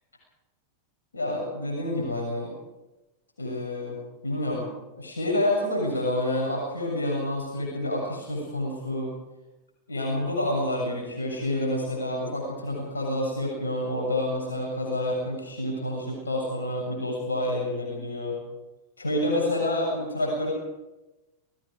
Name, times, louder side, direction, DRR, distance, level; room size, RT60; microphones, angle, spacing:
voice 1, 1.1-2.5 3.4-4.0 4.2-4.7 5.0-9.1 9.9-18.4 19.0-20.5, left 1 dB, 75° left, -1 dB, 7.2 m, -28 dB
29.5 x 19.0 x 5.2 m, 1.0 s
figure-of-eight pair, 90°, 0 cm